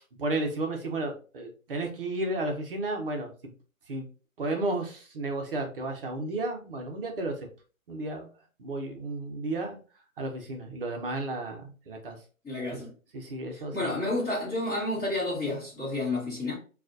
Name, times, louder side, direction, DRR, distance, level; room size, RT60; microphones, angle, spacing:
voice 1, 0.2-3.5 3.9-4.1 4.4-7.4 7.9-8.3 8.6-9.8 10.2-12.2 12.7-12.8 13.1-14.0, right 2 dB, 40° right, 0.8 m, -33 dB
voice 2, 12.4-12.9 13.7-16.5, left 2 dB, 10° left, 1.4 m, -30 dB
3.9 x 2.4 x 2.5 m
hypercardioid pair, 155°, 42 cm